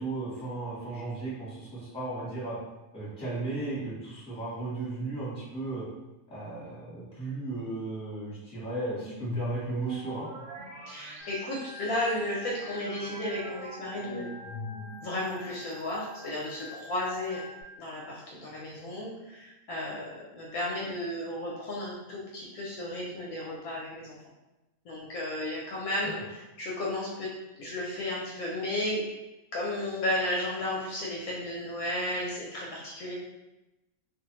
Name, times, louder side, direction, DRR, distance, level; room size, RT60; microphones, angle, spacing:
voice 1, 0.0-2.6 2.9-5.8 6.3-10.3, right 2 dB, 5° left, -9 dB, 0.9 m, -35 dB
sound 1, 8.9-15.2, equal, 90° right, 1.3 m, -41 dB
voice 2, 10.9-14.3 15.0-17.4 17.8-24.1 24.9-26.2 26.6-27.3 27.6-29.1 29.5-33.1, left 1 dB, 70° left, -4 dB, 0.9 m, -33 dB
Organ, 11.2-17.6, left 3 dB, 20° right, 0.7 m, -46 dB
2.5 x 2.4 x 2.9 m, 1.0 s
omnidirectional pair, 1.7 m